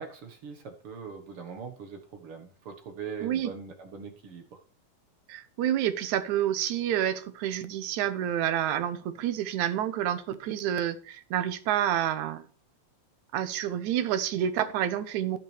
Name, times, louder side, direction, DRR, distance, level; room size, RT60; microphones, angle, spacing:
voice 1, 0.0-4.6, right 6 dB, 55° right, 5 dB, 2.0 m, -41 dB
voice 2, 3.2-3.5 5.3-12.4 13.3-15.4, right 11 dB, 80° right, 12 dB, 2.3 m, -28 dB
15.5 x 5.9 x 3.3 m, 0.42 s
omnidirectional pair, 3.4 m